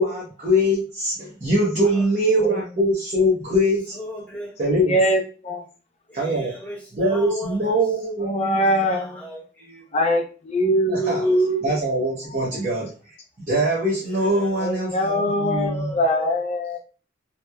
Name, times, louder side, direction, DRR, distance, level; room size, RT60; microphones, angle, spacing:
voice 1, 0.0-3.9 4.6-5.0 6.1-6.5 6.9-8.6 10.9-11.2 11.6-13.2 13.5-15.9, equal, 40° right, -5 dB, 0.7 m, -22 dB
voice 2, 3.9-4.5 6.1-7.8 8.8-10.1 11.0-11.4 14.0-14.8 15.2-16.3, left 2 dB, 5° left, -7 dB, 0.9 m, -37 dB
voice 3, 4.8-5.6 8.2-9.2 9.9-11.7 14.6-16.8, equal, 35° left, 2 dB, 0.4 m, -22 dB
2.9 x 2.1 x 2.2 m, 0.37 s
head